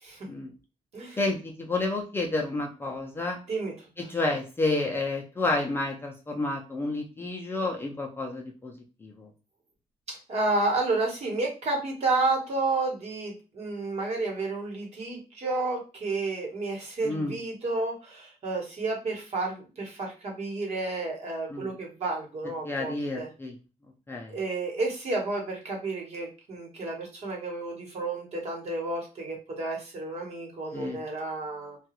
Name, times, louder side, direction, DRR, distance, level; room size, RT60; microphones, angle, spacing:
voice 1, 1.2-3.4 4.0-8.7 9.0-9.3 17.0-17.4 21.5-21.7 22.6-23.5 24.1-24.4 30.7-31.0, left 2 dB, 15° left, -1 dB, 0.4 m, -30 dB
voice 2, 10.1-23.3 24.3-31.8, right 3 dB, 50° right, -1 dB, 1.1 m, -31 dB
2.9 x 2.3 x 2.9 m, 0.32 s
wide cardioid pair, 170°, 14 cm